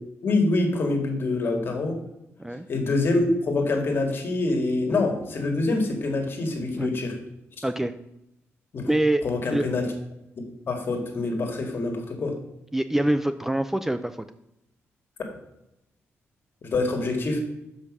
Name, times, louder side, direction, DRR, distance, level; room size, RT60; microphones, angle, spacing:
voice 1, 0.2-2.0 2.7-7.2 8.7-8.9 9.2-9.9 10.4-12.3 16.6-17.4, left 2 dB, 50° left, 3 dB, 1.8 m, -25 dB
voice 2, 8.9-9.2 9.5-9.7 12.7-14.2, right 1 dB, 5° right, 11 dB, 0.3 m, -24 dB
6.9 x 5.2 x 6.1 m, 0.85 s
cardioid pair, 120°, 5 cm